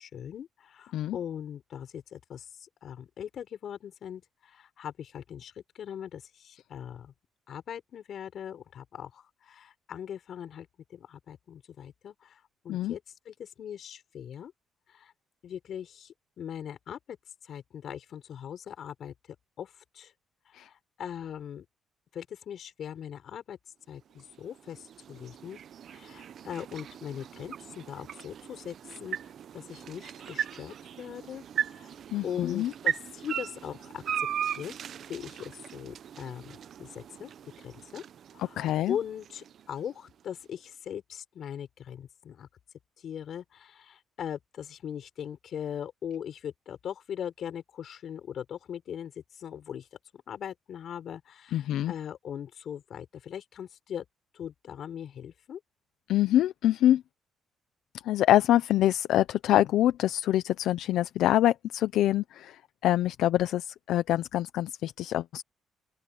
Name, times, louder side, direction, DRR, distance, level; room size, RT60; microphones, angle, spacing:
voice 1, 0.0-7.1 7.5-14.5 14.9-15.1 15.4-17.2 17.4-19.1 19.6-20.1 20.5-21.6 22.1-23.6 23.9-25.6 25.9-28.7 29.0-29.2 29.5-32.0 32.2-34.8 35.1-37.3 37.6-38.0 38.3-42.5 43.0-49.9 50.1-54.0 54.3-55.6, left 9 dB, 65° left, 6.2 m, -40 dB
sound 1, 24.0-40.2, right 9 dB, 60° right, 0.7 m, -38 dB
voice 2, 32.1-32.7 38.4-39.0 51.5-51.9 56.1-57.0 58.0-65.4, left 13 dB, 85° left, 0.6 m, -25 dB
open air
cardioid pair, 90°, 0 cm